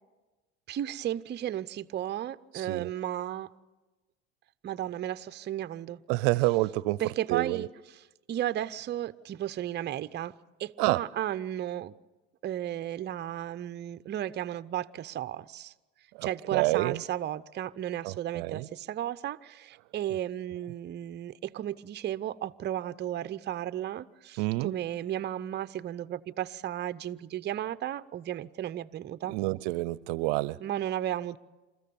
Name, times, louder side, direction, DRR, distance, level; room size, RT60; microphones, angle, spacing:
voice 1, 0.7-3.5 4.6-6.0 7.0-7.7 8.3-10.3 10.6-11.9 12.4-15.7 16.2-29.4 30.6-31.4, right 12 dB, 30° right, 0.6 m, -34 dB
voice 2, 2.5-2.9 6.1-7.0 7.3-7.7 10.8-11.0 16.2-17.0 18.0-18.7 24.4-24.7 29.3-30.6, right 21 dB, 70° right, 0.6 m, -28 dB
28.0 x 14.0 x 7.0 m
hypercardioid pair, 85°, 35 cm